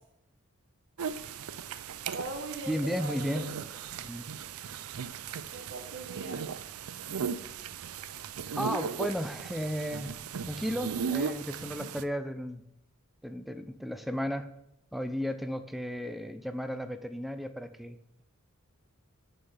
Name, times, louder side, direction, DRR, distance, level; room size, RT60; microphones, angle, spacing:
sound 1, 1.0-12.0, right 6 dB, 90° right, 0.5 m, -37 dB
voice 1, 2.1-3.5 5.0-5.1 5.5-6.5, right 2 dB, 60° right, 4 dB, 1.1 m, -40 dB
voice 2, 2.7-3.5 4.0-4.2 8.6-10.1 10.5-12.6 13.2-14.5 14.9-18.0, equal, ahead, 9 dB, 0.5 m, -34 dB
6.7 x 5.6 x 7.2 m, 0.79 s
head